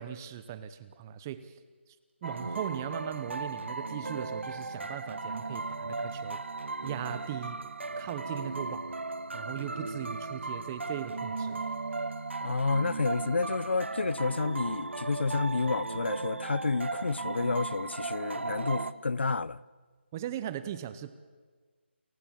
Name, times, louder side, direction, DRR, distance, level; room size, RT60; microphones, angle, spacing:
voice 1, 0.0-1.4 2.2-6.4 6.8-7.6 8.0-8.9 9.3-11.6 20.1-21.1, right 11 dB, 15° right, 0.7 m, -38 dB
sound 1, 2.2-18.9, right 3 dB, 80° right, 1.3 m, -36 dB
voice 2, 12.4-19.6, left 3 dB, 65° left, 0.8 m, -30 dB
29.0 x 15.5 x 7.7 m
figure-of-eight pair, 170°, 6 cm